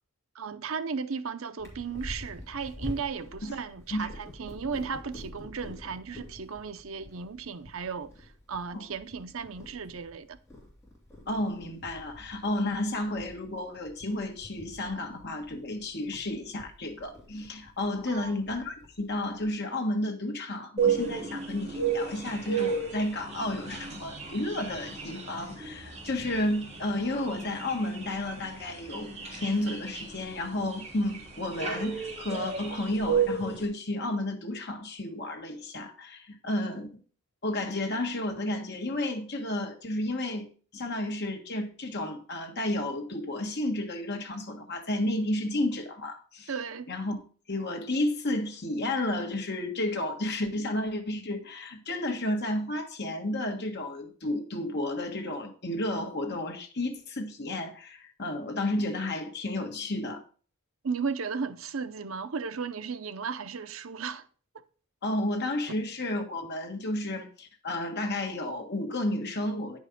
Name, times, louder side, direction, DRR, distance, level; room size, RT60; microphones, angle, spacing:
voice 1, 0.3-10.4 18.1-18.3 46.5-46.9 60.8-64.3 64.5-64.6, right 5 dB, 70° right, 0.7 m, -35 dB
Purr, 1.6-19.5, left 1 dB, 15° left, 3.0 m, -47 dB
voice 2, 11.3-36.9 37.4-40.5 40.7-46.5 46.9-47.2 47.5-60.2 65.0-69.8, left 1 dB, 50° left, 1.6 m, -32 dB
sound 1, 20.8-33.6, right 6 dB, 30° right, 2.9 m, -33 dB
10.0 x 5.3 x 5.2 m
head